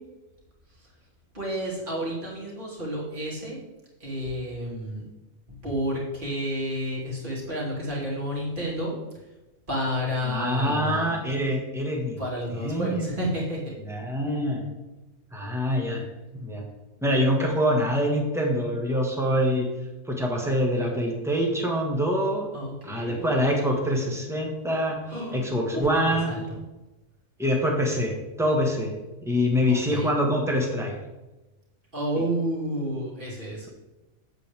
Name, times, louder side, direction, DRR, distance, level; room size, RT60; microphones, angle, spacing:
voice 1, 1.3-3.6 4.0-5.0 5.5-8.9 9.7-11.1 12.2-13.7 22.5-23.4 25.1-26.4 29.7-30.1 31.9-33.7, equal, 35° right, -5 dB, 2.8 m, -31 dB
voice 2, 10.2-12.2 12.6-13.1 13.9-14.6 15.3-16.0 16.3-16.6 17.0-19.7 20.1-22.5 22.8-25.0 25.3-26.4 27.4-28.9 29.2-30.9, equal, ahead, 0 dB, 1.4 m, -25 dB
8.2 x 8.0 x 3.5 m, 1.1 s
omnidirectional pair, 1.4 m